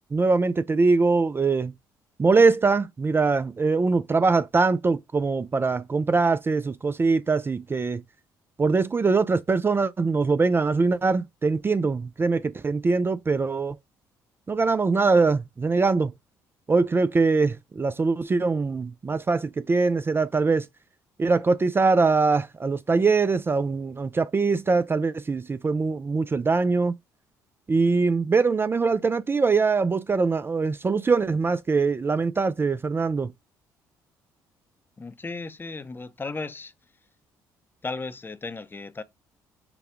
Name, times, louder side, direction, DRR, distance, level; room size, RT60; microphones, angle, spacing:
voice 1, 0.1-1.7 2.2-8.0 8.6-13.8 14.5-16.1 16.7-20.7 21.2-26.9 27.7-33.3, right 4 dB, 25° right, 0.4 m, -22 dB
voice 2, 35.0-36.7 37.8-39.0, left 3 dB, 25° left, 0.7 m, -35 dB
5.9 x 2.2 x 3.6 m
hypercardioid pair, 60°, 9 cm